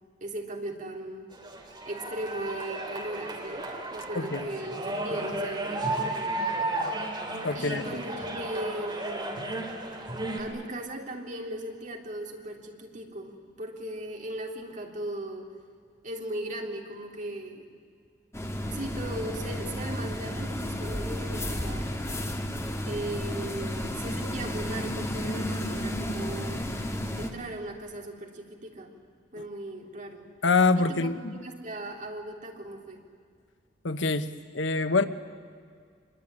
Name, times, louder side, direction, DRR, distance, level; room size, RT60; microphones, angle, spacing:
voice 1, 0.2-1.3 1.8-5.9 7.5-9.4 10.4-15.5 16.0-17.7 18.7-21.8 22.8-26.7 27.2-28.9 29.3-30.3 30.7-33.0, right 1 dB, 45° right, 2 dB, 3.6 m, -37 dB
sound 1, 1.3-10.4, right 2 dB, 25° right, 3.6 m, -33 dB
voice 2, 4.1-4.5 7.4-7.9 30.4-31.4 33.8-35.1, left 3 dB, 85° left, 11 dB, 1.2 m, -25 dB
sound 2, 18.3-27.3, equal, 15° left, 2.2 m, -32 dB
26.0 x 22.0 x 9.9 m, 2.1 s
head